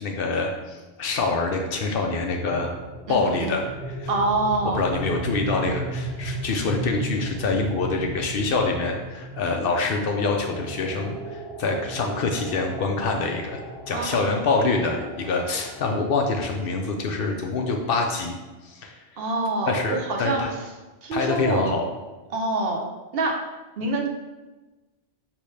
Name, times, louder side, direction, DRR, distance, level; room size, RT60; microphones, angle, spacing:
voice 1, 0.0-2.7 3.1-4.1 4.7-13.6 13.9-18.4 18.6-18.9 19.7-20.5 21.1-21.8, left 3 dB, 65° left, 2 dB, 0.7 m, -25 dB
sound 1, 2.2-16.9, right 1 dB, 5° right, 0.8 m, -36 dB
voice 2, 3.1-3.6 4.1-4.8 13.9-14.5 19.2-20.6 21.0-21.7 22.3-22.8 23.1-23.4 23.8-24.1, right 2 dB, 65° right, 0 dB, 0.9 m, -26 dB
5.3 x 3.1 x 3.2 m, 1.2 s
omnidirectional pair, 1.1 m